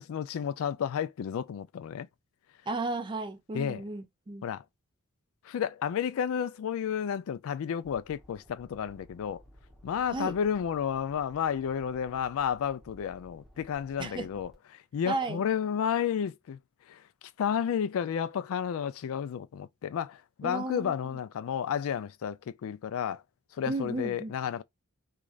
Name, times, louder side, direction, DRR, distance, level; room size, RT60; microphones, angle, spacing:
voice 1, 0.0-2.1 3.5-3.8 4.4-4.6 5.4-9.4 9.8-16.6 16.9-17.0 17.4-23.2 23.5-24.6, left 8 dB, 65° left, 0.3 m, -32 dB
voice 2, 2.7-4.4 10.1-10.4 14.0-14.3 15.1-15.4 20.4-20.9 23.7-24.3, right 2 dB, 20° right, 0.4 m, -34 dB
sound 1, 7.8-14.5, equal, ahead, 0.9 m, -56 dB
3.0 x 2.3 x 2.3 m
head